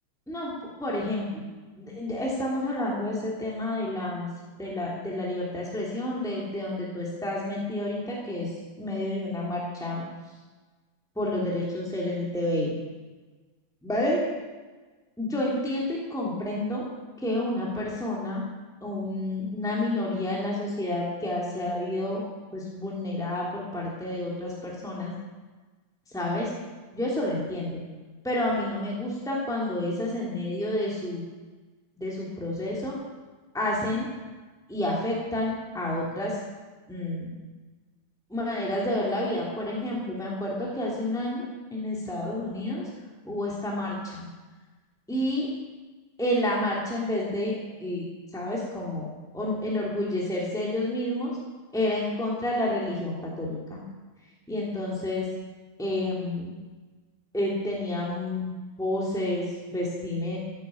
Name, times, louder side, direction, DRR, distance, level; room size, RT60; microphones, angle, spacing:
voice 1, 0.8-1.5 1.8-4.3 4.6-10.0 11.2-12.7 13.8-14.2 15.2-16.9 17.2-18.4 18.8-22.2 22.5-25.1 26.1-26.5 26.9-27.8 28.2-31.2 32.0-33.0 33.5-34.1 34.7-36.4 36.9-37.3 38.3-41.4 41.7-42.9 43.2-44.3 45.1-45.5 46.2-48.1 48.3-51.4 51.7-53.8 54.5-55.3 55.8-56.5 57.3-58.5 58.8-60.4, left 1 dB, ahead, -5 dB, 3.0 m, -29 dB
16.0 x 10.5 x 7.3 m, 1.3 s
omnidirectional pair, 2.2 m